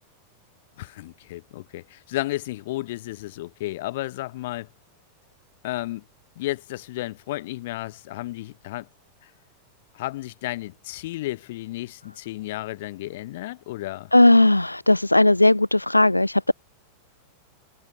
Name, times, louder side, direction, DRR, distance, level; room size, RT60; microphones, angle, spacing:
voice 1, 0.8-4.7 5.6-6.0 6.4-8.9 9.2-9.3 9.9-14.1, left 17 dB, 55° left, 7.3 m, -33 dB
voice 2, 14.1-16.5, left 1 dB, 85° left, 0.4 m, -17 dB
figure-of-eight pair, 90°, 0 cm